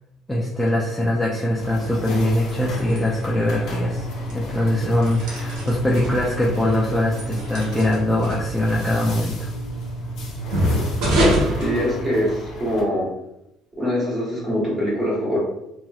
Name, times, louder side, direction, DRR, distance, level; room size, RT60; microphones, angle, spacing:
voice 1, 0.3-4.1 4.3-9.5, left 1 dB, 5° left, -5 dB, 0.4 m, -22 dB
sound 1, 1.6-12.8, left 1 dB, 60° left, 0.8 m, -37 dB
sound 2, 2.1-12.6, right 1 dB, 75° right, 0.8 m, -26 dB
voice 2, 11.6-13.0 13.8-15.4, equal, 15° right, -7 dB, 1.3 m, -23 dB
2.9 x 2.4 x 2.3 m, 0.86 s
cardioid pair, 155°, 0 cm